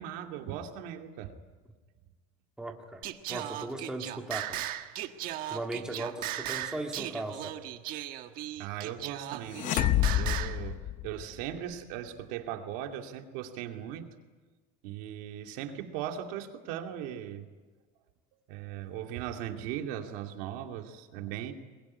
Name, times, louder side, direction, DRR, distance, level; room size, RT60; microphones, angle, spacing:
voice 1, 0.0-1.3 8.6-9.9 10.1-14.1 14.8-17.5 18.5-21.5, right 10 dB, 85° right, 4 dB, 2.4 m, -38 dB
voice 2, 2.6-3.0 3.3-4.6 5.5-7.6 21.2-21.3, right 2 dB, 5° right, 2 dB, 2.0 m, -37 dB
Singing, 3.0-10.6, right 13 dB, 55° right, 1.4 m, -37 dB
sound 1, 9.5-11.5, left 12 dB, 45° left, 0.9 m, -28 dB
22.5 x 22.0 x 9.7 m, 1.3 s
cardioid pair, 165°, 18 cm